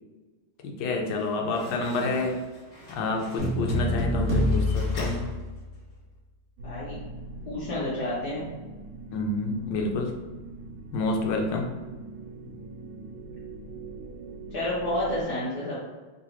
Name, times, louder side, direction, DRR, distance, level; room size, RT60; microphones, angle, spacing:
voice 1, 0.6-2.4 2.9-5.3 9.1-10.1 10.9-11.7, left 2 dB, 85° left, 2 dB, 1.4 m, -28 dB
Slam, 0.9-6.0, left 1 dB, 40° left, 0.9 m, -45 dB
sound 1, 3.4-5.9, left 1 dB, 10° right, 0.7 m, -26 dB
voice 2, 6.6-7.0 7.4-8.4 14.5-15.8, left 1 dB, 60° left, -9 dB, 1.3 m, -30 dB
sound 2, 6.6-15.2, right 2 dB, 85° right, 1.4 m, -42 dB
3.8 x 2.4 x 2.8 m, 1.3 s
omnidirectional pair, 2.1 m